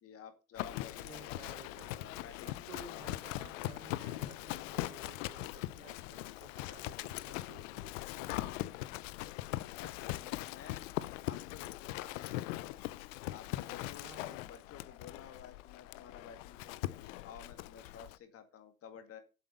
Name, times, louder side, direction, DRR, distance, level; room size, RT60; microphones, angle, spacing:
voice 1, 0.0-3.2 9.7-10.8 11.3-12.8 13.3-14.1 14.4-19.2, left 7 dB, 30° left, 9 dB, 1.9 m, -53 dB
Livestock farm animals working animals, 0.6-18.2, left 17 dB, 55° left, 0.7 m, -41 dB
voice 2, 1.0-2.2 2.5-8.6 14.0-14.5, right 5 dB, 75° right, 5 dB, 3.1 m, -55 dB
8.4 x 7.5 x 5.4 m, 0.31 s
hypercardioid pair, 115°, 46 cm